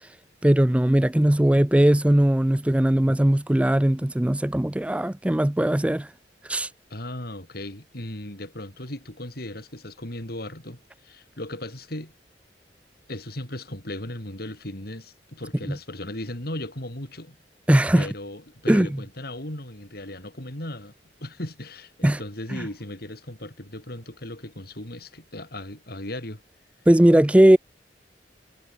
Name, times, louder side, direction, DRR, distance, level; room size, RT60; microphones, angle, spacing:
voice 1, 0.4-6.1 6.5-6.7 17.7-18.1 18.7-18.9 22.0-22.2 22.5-22.7 26.9-27.6, right 1 dB, 5° right, 0.4 m, -19 dB
voice 2, 6.9-12.1 13.1-17.4 17.9-20.9 21.2-26.4, left 1 dB, 60° left, 6.6 m, -36 dB
head